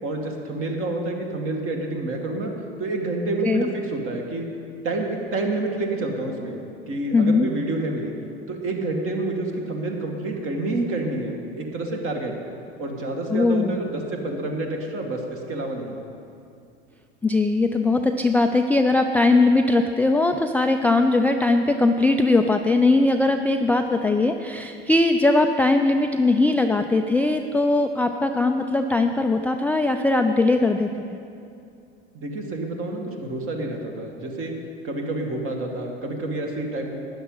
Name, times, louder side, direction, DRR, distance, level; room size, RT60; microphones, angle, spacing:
voice 1, 0.0-2.5 2.8-4.5 4.8-8.1 8.5-12.3 12.8-16.0 32.1-34.5 34.8-36.9, right 2 dB, 40° right, 2 dB, 2.1 m, -28 dB
voice 2, 7.1-7.5 13.3-13.8 17.2-30.9, left 2 dB, 5° left, 5 dB, 0.3 m, -20 dB
12.5 x 9.6 x 5.6 m, 2.5 s
hypercardioid pair, 75°, 32 cm